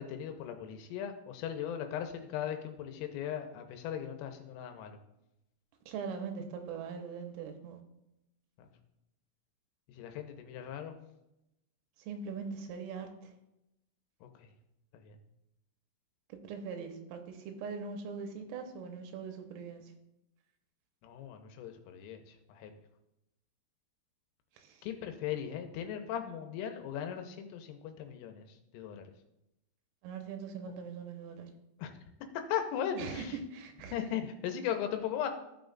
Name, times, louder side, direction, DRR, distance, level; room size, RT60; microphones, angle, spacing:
voice 1, 0.0-5.0 8.6-8.7 9.9-11.0 14.2-14.5 14.9-15.2 21.0-22.7 24.8-29.1 31.8-31.9 32.5-33.4 33.9-35.3, left 9 dB, 85° left, 6 dB, 3.2 m, -38 dB
voice 2, 5.9-7.8 12.0-13.3 16.4-19.8 24.6-24.8 30.0-31.5 33.0-33.2 33.5-33.9, right 5 dB, 90° right, 5 dB, 3.4 m, -41 dB
15.0 x 6.4 x 2.4 m, 0.88 s
omnidirectional pair, 5.9 m